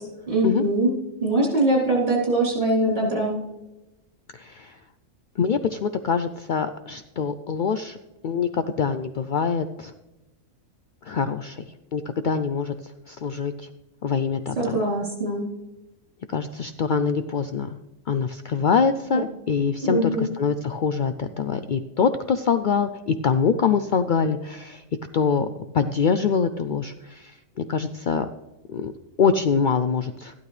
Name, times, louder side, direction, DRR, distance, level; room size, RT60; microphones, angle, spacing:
voice 1, 0.3-0.9 1.2-3.4 14.6-15.4 19.8-20.3, right 1 dB, 35° right, -5 dB, 4.1 m, -22 dB
voice 2, 4.4-4.7 5.4-8.0 8.2-9.9 11.1-11.6 11.9-12.7 13.1-13.5 14.0-14.8 16.3-17.7 18.1-20.1 20.4-24.8 25.1-25.5 25.7-28.3 28.7-28.9 29.2-30.3, left 6 dB, 75° left, 10 dB, 0.4 m, -24 dB
13.5 x 12.0 x 3.3 m, 1.0 s
omnidirectional pair, 1.4 m